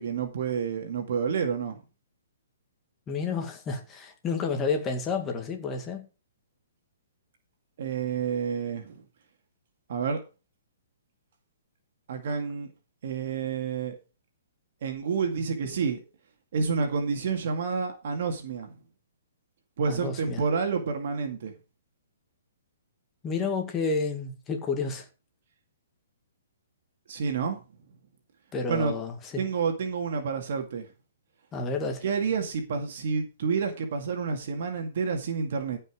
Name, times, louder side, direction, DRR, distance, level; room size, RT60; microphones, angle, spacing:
voice 1, 0.0-1.8 7.8-9.0 9.9-10.2 12.1-12.7 13.0-14.0 14.8-16.0 16.5-18.8 19.8-21.5 27.1-27.6 28.7-28.9 29.4-30.9 32.0-35.8, right 5 dB, 55° right, 2.1 m, -29 dB
voice 2, 3.1-6.1 19.9-20.4 23.2-25.1 28.5-29.4 31.5-32.0, left 4 dB, 15° left, 2.1 m, -30 dB
15.0 x 5.6 x 4.9 m
hypercardioid pair, 165°, 0 cm